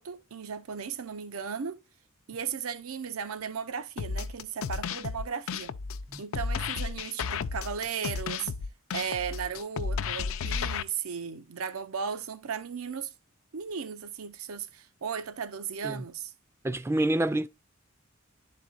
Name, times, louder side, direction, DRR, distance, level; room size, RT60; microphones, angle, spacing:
voice 1, 0.0-1.8 2.3-5.7 6.2-8.5 8.9-13.1 13.5-16.3, right 6 dB, 90° right, 0.6 m, -36 dB
sound 1, 4.0-10.8, left 5 dB, 70° left, 0.4 m, -33 dB
voice 2, 16.6-17.5, right 1 dB, 10° right, 0.4 m, -27 dB
11.0 x 4.3 x 2.4 m
head